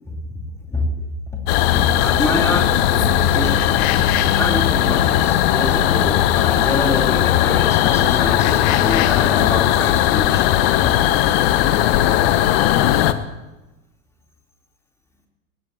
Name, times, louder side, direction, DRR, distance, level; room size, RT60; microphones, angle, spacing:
sound 1, 1.5-13.1, left 12 dB, 40° left, 1.0 m, -17 dB
voice 1, 1.7-3.7 4.2-10.4, left 2 dB, 5° left, -1 dB, 3.9 m, -26 dB
19.5 x 19.5 x 3.1 m, 1.1 s
figure-of-eight pair, 100°, 45 cm